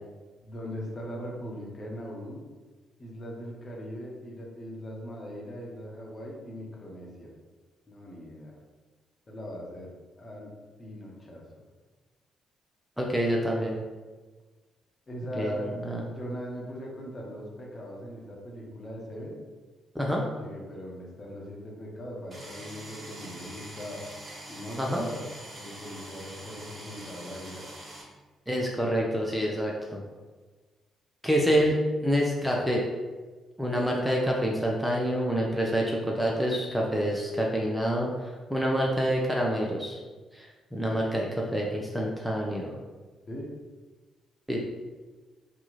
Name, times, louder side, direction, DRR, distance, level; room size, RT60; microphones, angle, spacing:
voice 1, 0.4-2.4 3.0-7.3 7.9-8.5 9.3-9.9 10.2-10.5 10.8-11.6 15.1-15.7 16.0-19.4 20.3-24.0 24.5-25.3 25.6-27.6 31.3-31.7 43.3-43.5, equal, 35° left, -2 dB, 1.0 m, -40 dB
voice 2, 13.0-13.7 15.4-16.0 19.9-20.2 24.8-25.0 28.5-30.0 31.2-31.7 32.0-32.9 33.6-40.0 40.3-42.8 44.5-44.6, equal, 5° right, -2 dB, 0.6 m, -27 dB
sound 1, 22.3-28.0, right 1 dB, 25° right, 1.3 m, -44 dB
2.9 x 2.3 x 4.0 m, 1.3 s
figure-of-eight pair, 40°, 0 cm